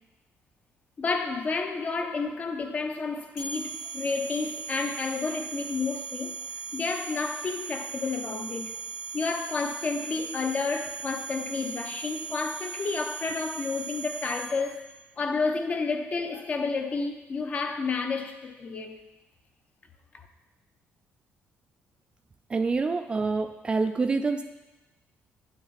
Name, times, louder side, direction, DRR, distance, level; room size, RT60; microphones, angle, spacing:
voice 1, 1.0-6.4 6.7-8.8 9.1-14.8 15.2-19.0, left 4 dB, 30° left, 0.7 m, -30 dB
sound 1, 3.4-14.8, right 5 dB, 85° left, 1.6 m, -38 dB
voice 2, 22.5-24.4, right 4 dB, 20° right, 0.3 m, -26 dB
9.7 x 6.0 x 4.0 m
cardioid pair, 150°, 5 cm